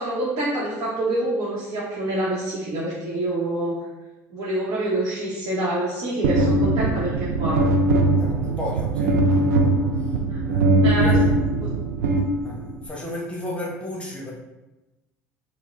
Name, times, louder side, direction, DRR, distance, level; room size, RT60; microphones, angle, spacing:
voice 1, 0.0-3.9 4.3-7.8 10.3-10.4 10.8-11.2 11.6-11.7, right 1 dB, 50° right, -7 dB, 1.0 m, -26 dB
sound 1, 6.2-12.8, right 2 dB, 80° right, 0.4 m, -20 dB
voice 2, 8.1-9.8 10.5-10.7 11.0-11.3 12.4-14.3, left 1 dB, 15° left, -4 dB, 1.0 m, -34 dB
4.6 x 2.1 x 2.5 m, 1.0 s
hypercardioid pair, 75°, 9 cm